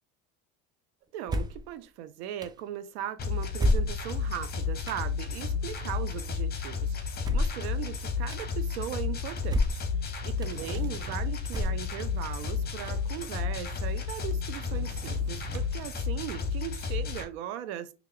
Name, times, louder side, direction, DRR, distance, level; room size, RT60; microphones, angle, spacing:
voice 1, 1.1-17.9, right 11 dB, 85° right, 0.5 m, -38 dB
sound 1, 1.3-1.7 2.4-2.5 3.6-4.3 4.9-5.0 7.2-7.7 8.3-8.4 9.5-9.9 10.4-10.5 11.5-12.1, left 1 dB, 15° right, 0.3 m, -28 dB
sound 2, 3.2-17.2, left 5 dB, 30° left, 0.8 m, -32 dB
Drawer open or close, 10.2-11.3 11.9-13.4 13.6-13.7 13.9-15.7, right 5 dB, 55° right, 0.7 m, -46 dB
3.2 x 2.4 x 3.3 m
supercardioid pair, 100°, 32 cm